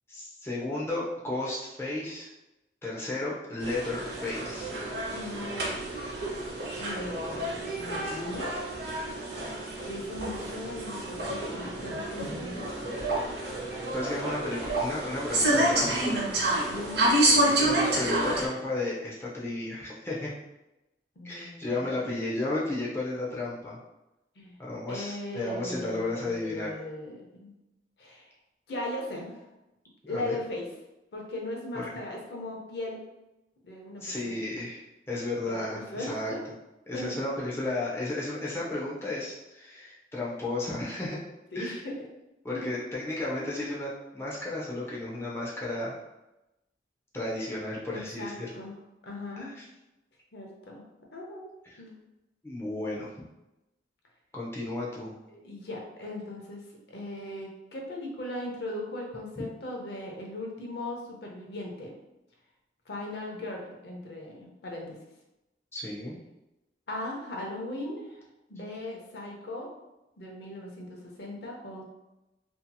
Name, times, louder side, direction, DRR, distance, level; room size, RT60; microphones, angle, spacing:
voice 1, 0.1-2.3 2.8-4.7 9.7-9.9 13.9-16.3 17.6-20.3 21.2-23.8 24.6-26.7 30.0-30.4 31.7-31.9 34.0-36.3 36.9-41.2 41.5-41.8 42.4-46.0 47.1-48.5 49.4-49.6 51.7-51.8 52.4-53.1 54.3-55.1 65.7-66.2, left 2 dB, 15° left, -6 dB, 0.5 m, -33 dB
sound 1, 3.6-18.5, right 1 dB, 65° right, 0.7 m, -29 dB
voice 2, 5.1-5.7 6.8-8.5 9.8-12.7 16.7-17.6 21.2-22.1 24.4-24.6 24.9-27.5 28.0-28.3 28.7-29.5 30.1-30.7 31.1-33.0 33.6-34.5 35.5-36.4 36.9-37.1 41.5-42.0 42.5-42.8 47.9-48.7 49.0-49.5 50.3-50.8 51.1-51.5 51.8-51.9 55.3-56.6 56.9-61.9 62.9-65.0 66.9-68.2 68.5-69.7 70.2-71.8, left 1 dB, 70° left, -1 dB, 0.6 m, -38 dB
2.7 x 2.7 x 2.3 m, 0.96 s
head